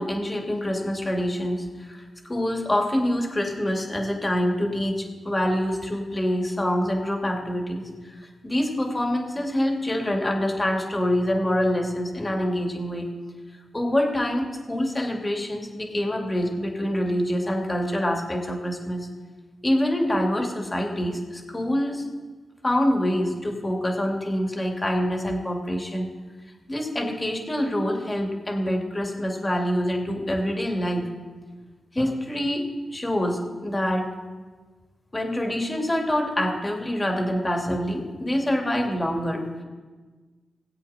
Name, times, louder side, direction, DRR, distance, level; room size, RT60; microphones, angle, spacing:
voice 1, 0.0-2.0 2.3-8.1 8.4-13.1 13.7-19.1 19.6-22.0 22.6-26.1 26.7-31.1 31.9-32.7 32.9-34.1 35.1-39.6, equal, 25° left, 1 dB, 2.7 m, -26 dB
19.5 x 8.1 x 4.4 m, 1.4 s
cardioid pair, 55°, 0 cm